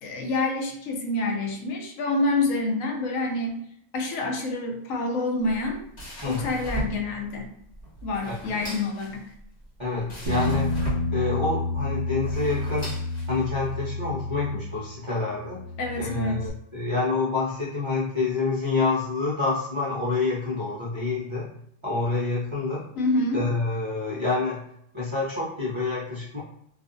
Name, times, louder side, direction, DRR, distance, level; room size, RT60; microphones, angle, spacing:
voice 1, 0.0-3.7 3.9-5.8 6.2-7.5 8.0-9.3 15.8-16.4 23.0-23.4, left 2 dB, 85° left, 3 dB, 1.0 m, -27 dB
sound 1, 5.4-13.7, right 1 dB, 45° left, 1.1 m, -38 dB
voice 2, 9.8-13.0 13.3-15.6 16.0-21.5 21.8-22.9 23.3-24.6 24.9-26.4, left 3 dB, 45° right, -8 dB, 0.4 m, -27 dB
Bass guitar, 10.3-15.0 15.3-16.5, left 2 dB, 65° right, 0.8 m, -30 dB
2.4 x 2.4 x 2.5 m, 0.72 s
omnidirectional pair, 1.3 m